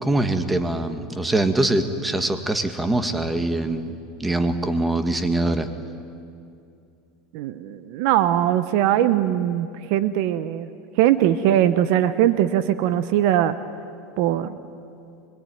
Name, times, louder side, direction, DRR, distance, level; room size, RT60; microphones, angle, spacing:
voice 1, 0.0-5.7, right 2 dB, 10° right, 8 dB, 1.9 m, -23 dB
voice 2, 7.3-10.7 11.0-13.6 14.2-14.6, right 11 dB, 65° right, 13 dB, 1.0 m, -20 dB
25.0 x 22.0 x 9.4 m, 2.5 s
supercardioid pair, 115°, 0 cm